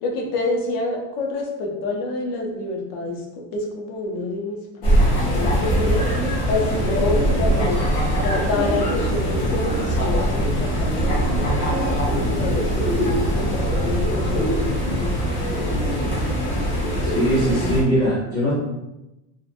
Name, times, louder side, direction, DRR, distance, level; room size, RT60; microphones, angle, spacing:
voice 1, 0.0-3.2 3.5-6.1 6.4-7.8 8.2-16.1 17.4-17.8, left 2 dB, 70° left, 0 dB, 0.7 m, -28 dB
sound 1, 4.8-17.8, equal, 35° left, 0.8 m, -22 dB
voice 2, 17.1-18.5, equal, 10° right, -13 dB, 0.4 m, -21 dB
2.7 x 2.2 x 2.5 m, 0.96 s
cardioid pair, 180°, 48 cm